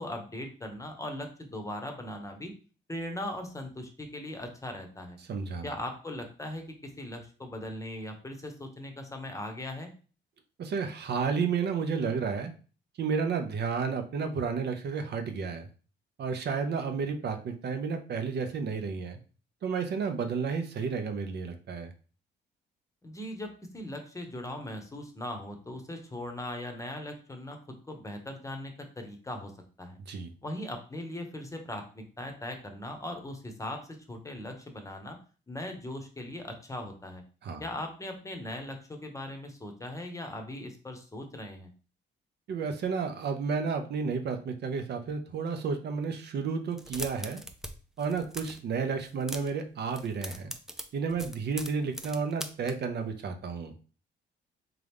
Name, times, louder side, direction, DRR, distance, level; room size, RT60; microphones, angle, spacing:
voice 1, 0.0-2.5 2.9-5.2 5.6-9.9 23.0-27.6 27.9-29.5 29.8-30.0 30.4-33.8 34.1-35.2 35.5-37.2 37.6-41.7, left 1 dB, 15° left, 4 dB, 0.8 m, -39 dB
voice 2, 5.3-5.7 10.6-12.5 13.0-15.7 16.2-19.2 19.6-21.9 30.1-30.3 37.4-37.6 42.5-47.4 48.0-50.5 50.9-53.7, right 5 dB, 60° right, 6 dB, 0.7 m, -31 dB
sound 1, 46.7-47.7 48.0-48.6 49.0-49.6 49.9-52.7, equal, ahead, 0.4 m, -40 dB
3.7 x 2.9 x 3.5 m, 0.37 s
cardioid pair, 90°, 20 cm